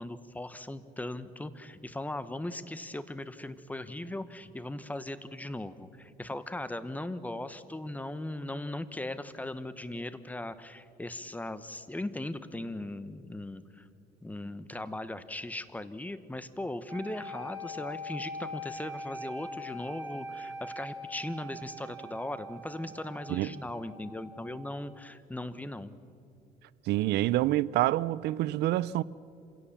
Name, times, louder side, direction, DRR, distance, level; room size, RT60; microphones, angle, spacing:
voice 1, 0.0-13.8 14.2-26.0, left 1 dB, 10° left, 1.0 m, -38 dB
sound 1, 16.9-25.0, equal, 20° right, 5.2 m, -42 dB
voice 2, 26.9-29.0, right 15 dB, 80° right, 0.6 m, -27 dB
27.0 x 17.0 x 7.2 m
cardioid pair, 110°, 17 cm